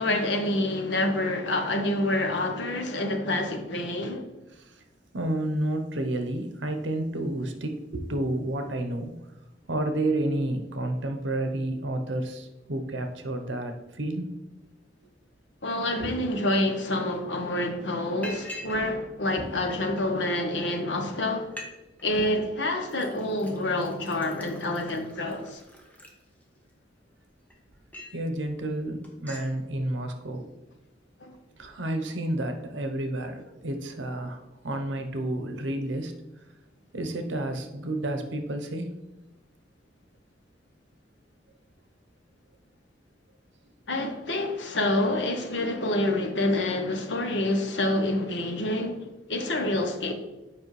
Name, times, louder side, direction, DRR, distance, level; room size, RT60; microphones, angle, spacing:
voice 1, 0.0-4.2 15.6-21.5 22.0-25.6 31.2-31.4 43.9-49.0 49.3-50.1, left 1 dB, 70° left, 0.9 m, -27 dB
voice 2, 5.1-9.2 9.7-14.3 16.0-16.1 19.4-19.5 22.2-22.3 28.1-30.5 31.6-36.1 36.9-38.9, right 1 dB, 80° right, 0.9 m, -30 dB
Liquid, 17.1-17.2 17.5-17.7 18.2-18.8 19.1-20.0 20.7-20.8 21.1-21.2 21.4-21.7 22.0-22.4 22.9-26.7 27.2-28.2 28.6-28.8 29.0-29.5, left 1 dB, 10° left, 0.9 m, -44 dB
7.6 x 5.2 x 3.2 m
head